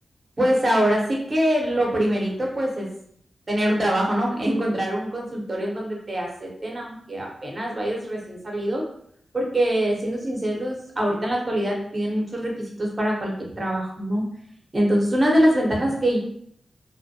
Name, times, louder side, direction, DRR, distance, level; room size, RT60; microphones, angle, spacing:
voice 1, 0.4-2.9 3.5-8.8 9.3-14.2 14.7-16.2, equal, 40° right, -2 dB, 0.8 m, -24 dB
2.2 x 2.1 x 2.7 m, 0.66 s
cardioid pair, 55°, 0 cm